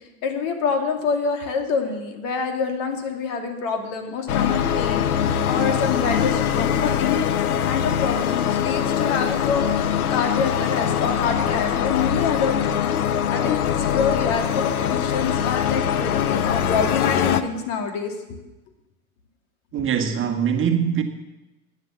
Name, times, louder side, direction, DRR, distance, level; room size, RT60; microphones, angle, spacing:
voice 1, 0.2-7.2 7.6-12.9 13.3-18.1, left 5 dB, 60° left, 2.6 m, -26 dB
sound 1, 4.3-17.4, left 9 dB, 80° left, 1.0 m, -22 dB
voice 2, 19.7-21.0, right 8 dB, 30° right, 1.6 m, -22 dB
12.5 x 9.9 x 6.9 m
hypercardioid pair, 95°, 44 cm